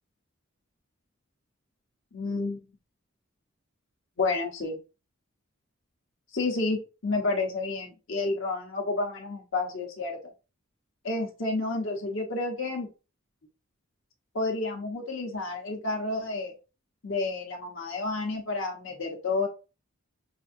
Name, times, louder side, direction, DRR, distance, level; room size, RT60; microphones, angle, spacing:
voice 1, 2.1-2.6 4.2-4.8 6.3-10.2 11.0-12.9 14.3-16.5 17.0-19.5, left 3 dB, 65° left, 1 dB, 1.0 m, -30 dB
6.1 x 2.7 x 2.6 m, 0.31 s
head